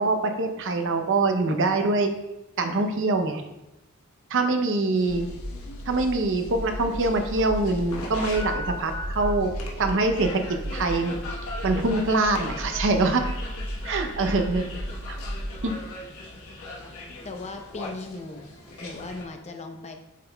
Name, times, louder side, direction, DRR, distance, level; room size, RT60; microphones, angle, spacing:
voice 1, 0.0-2.1 2.6-3.4 4.3-5.3 5.9-9.5 9.8-10.4 10.7-11.2 11.6-13.2 13.8-14.7 15.1-15.2 15.6-15.7, right 2 dB, 60° right, 6 dB, 0.7 m, -24 dB
sound 1, 4.9-19.2, left 2 dB, 85° left, 1.2 m, -40 dB
sound 2, 5.1-15.6, equal, 85° right, 0.9 m, -35 dB
voice 2, 17.2-18.4 18.8-19.9, left 2 dB, 30° left, 4 dB, 0.7 m, -37 dB
8.2 x 5.7 x 2.3 m, 0.95 s
head